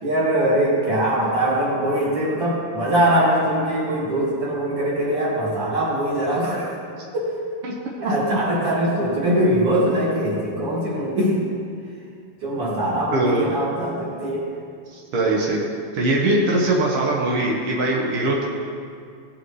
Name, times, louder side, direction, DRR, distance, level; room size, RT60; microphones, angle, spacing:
voice 1, 0.0-6.7 7.1-7.3 8.0-11.4 12.4-14.5, right 1 dB, 35° right, -6 dB, 2.5 m, -22 dB
voice 2, 8.0-8.4 13.1-13.5 14.9-15.6 15.9-18.4, right 2 dB, 80° right, -3 dB, 1.2 m, -21 dB
17.0 x 7.0 x 3.2 m, 2.3 s
omnidirectional pair, 4.3 m